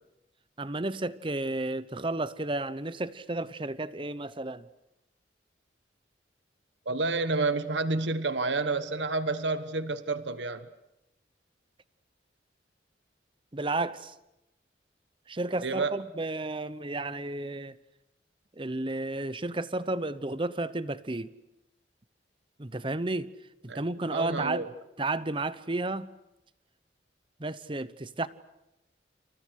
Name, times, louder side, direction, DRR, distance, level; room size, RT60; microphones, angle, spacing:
voice 1, 0.6-4.7 13.5-14.1 15.3-17.8 18.6-21.3 22.6-23.3 23.7-24.7 25.0-26.1 27.4-28.3, right 2 dB, 30° right, 0.9 m, -32 dB
voice 2, 6.8-10.7 15.6-15.9 23.7-23.8 24.1-24.7, right 3 dB, 85° right, 1.3 m, -29 dB
29.5 x 28.5 x 6.6 m
head